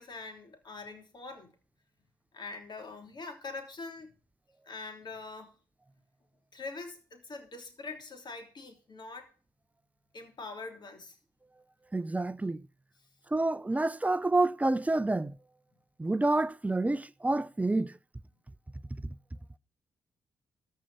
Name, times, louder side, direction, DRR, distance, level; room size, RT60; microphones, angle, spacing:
voice 1, 0.0-1.5 2.3-4.1 4.7-5.5 6.5-9.3 10.1-11.2, left 3 dB, 50° left, 3.3 m, -43 dB
voice 2, 11.9-12.6 13.3-15.4 16.0-18.0, right 2 dB, 15° right, 0.7 m, -28 dB
14.0 x 5.7 x 7.9 m
hypercardioid pair, 45°, 10 cm